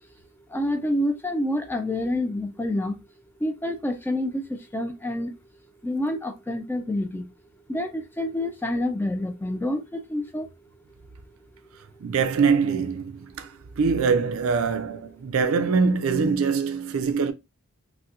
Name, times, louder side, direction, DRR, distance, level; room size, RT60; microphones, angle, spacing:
voice 1, 0.5-3.0 3.4-4.4 4.7-5.3 5.8-7.2 7.7-10.5, left 1 dB, 10° left, 0.3 m, -27 dB
voice 2, 12.0-17.3, right 5 dB, 70° right, 0.4 m, -23 dB
4.1 x 2.2 x 2.4 m
head